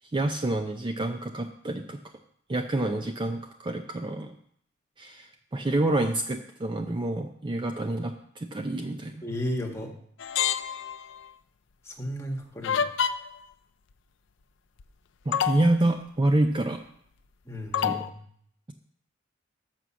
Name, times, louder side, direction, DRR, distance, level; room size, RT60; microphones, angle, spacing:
voice 1, 0.1-2.0 2.5-4.4 5.0-9.2 15.3-16.8 17.8-18.0, right 1 dB, 25° right, 5 dB, 0.5 m, -28 dB
voice 2, 9.2-9.9 11.9-12.9 17.4-18.2, left 1 dB, 15° left, 0 dB, 1.3 m, -34 dB
sound 1, 10.2-11.2 12.6-13.4 14.8-14.9 15.3-15.7 17.7-18.1, left 8 dB, 65° left, 0.4 m, -27 dB
6.2 x 6.2 x 6.9 m, 0.66 s
head